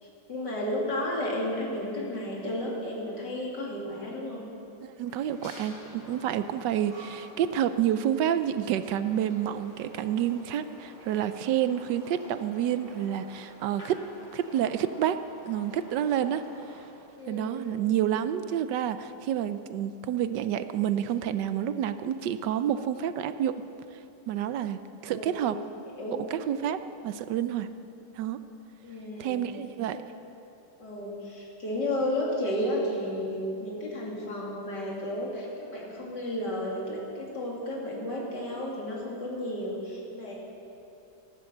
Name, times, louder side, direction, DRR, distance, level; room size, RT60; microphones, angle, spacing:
voice 1, 0.0-4.5 17.2-17.6 25.0-25.5 25.8-26.3 28.8-29.4 29.9-30.1 30.8-40.5, left 1 dB, 70° left, -3 dB, 3.4 m, -33 dB
sound 1, 5.0-16.9, equal, 25° left, 3.1 m, -49 dB
voice 2, 5.0-14.0 14.3-15.2 15.5-16.4 17.3-23.6 24.3-25.6 26.3-27.7 28.2-28.4 29.2-30.0, right 10 dB, 80° right, 12 dB, 1.3 m, -29 dB
14.0 x 11.5 x 7.8 m, 2.8 s
omnidirectional pair, 1.9 m